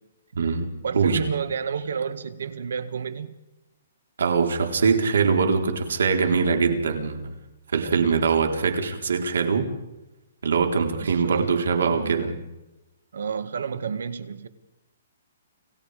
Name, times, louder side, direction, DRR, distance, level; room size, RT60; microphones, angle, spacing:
voice 1, 0.3-0.7 0.9-1.2 4.2-7.3 7.7-9.7 10.4-12.4, right 5 dB, 90° right, 4.1 m, -22 dB
voice 2, 0.8-3.4 7.8-8.0 11.0-11.5 11.8-12.3 13.1-14.5, right 6 dB, 70° right, 1.8 m, -30 dB
30.0 x 17.5 x 5.1 m
hypercardioid pair, 180°, 0 cm